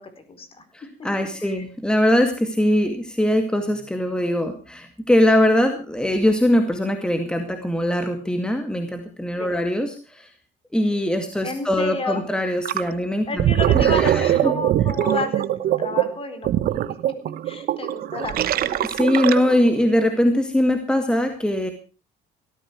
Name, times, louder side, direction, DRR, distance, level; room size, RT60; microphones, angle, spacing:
voice 1, 0.0-0.6 1.4-1.6 9.4-9.6 11.4-12.2 13.3-17.0 17.4-18.9, left 3 dB, 35° left, 9 dB, 4.2 m, -32 dB
voice 2, 0.7-10.3 10.7-13.5 13.7-14.5 18.8-21.7, left 1 dB, 5° left, 6 dB, 2.1 m, -21 dB
Gurgling, 12.6-12.9 13.2-19.7, right 12 dB, 60° right, 1.0 m, -22 dB
17.5 x 14.0 x 4.6 m, 0.35 s
cardioid pair, 110°, 17 cm